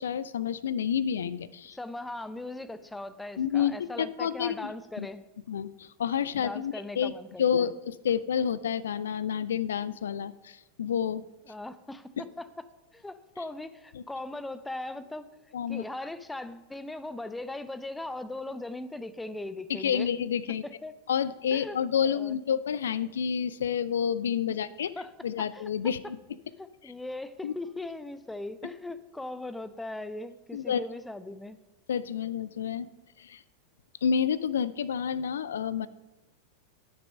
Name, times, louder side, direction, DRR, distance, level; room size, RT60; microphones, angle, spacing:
voice 1, 0.0-1.8 3.4-4.7 5.0-5.1 5.5-7.1 7.4-11.2 15.5-15.8 19.7-20.6 21.1-24.9 25.2-26.2 27.4-27.5 30.5-30.8 31.9-32.9 33.2-33.4 34.0-35.9, left 8 dB, 65° left, 18 dB, 0.3 m, -29 dB
voice 2, 1.7-5.3 6.4-7.7 11.5-12.6 12.9-20.1 20.6-20.9 21.5-22.4 25.0-25.7 26.6-31.6, left 2 dB, 5° left, 14 dB, 0.5 m, -39 dB
12.0 x 6.1 x 5.3 m, 1.0 s
figure-of-eight pair, 90°, 0 cm